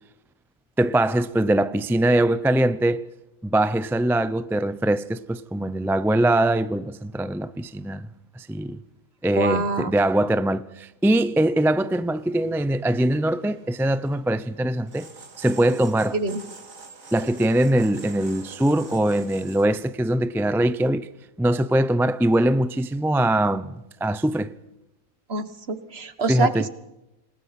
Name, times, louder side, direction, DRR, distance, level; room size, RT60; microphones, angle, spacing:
voice 1, 0.8-3.0 3.4-8.1 8.4-8.8 9.2-15.1 15.4-16.2 17.1-21.1 21.4-24.5 26.3-26.7, right 1 dB, 5° right, 0.4 m, -22 dB
voice 2, 9.4-9.9 16.1-16.4 25.3-26.7, right 3 dB, 45° right, 1.8 m, -26 dB
sound 1, 11.8-19.7, right 3 dB, 70° right, 3.0 m, -46 dB
28.5 x 21.0 x 6.0 m
omnidirectional pair, 1.5 m